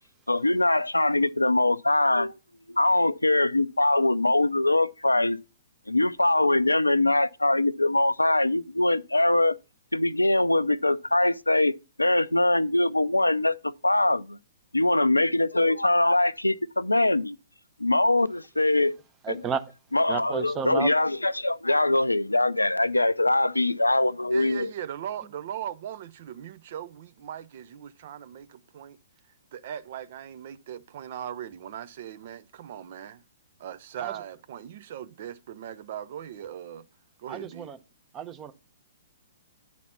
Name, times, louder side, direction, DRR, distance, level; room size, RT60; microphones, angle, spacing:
voice 1, 0.3-2.3 2.7-5.4 5.9-9.6 9.9-11.7 12.0-14.4 14.7-17.4 17.8-18.9 19.9-24.7, left 2 dB, 90° left, 0.4 m, -23 dB
voice 2, 19.2-19.6 20.1-20.9 34.0-34.1 37.3-37.8 38.1-38.5, right 7 dB, 20° right, 0.8 m, -31 dB
voice 3, 24.3-29.0 29.5-33.2 33.6-36.9 37.2-37.7, right 10 dB, 50° right, 0.6 m, -39 dB
9.7 x 4.2 x 5.7 m
figure-of-eight pair, 120°, 0 cm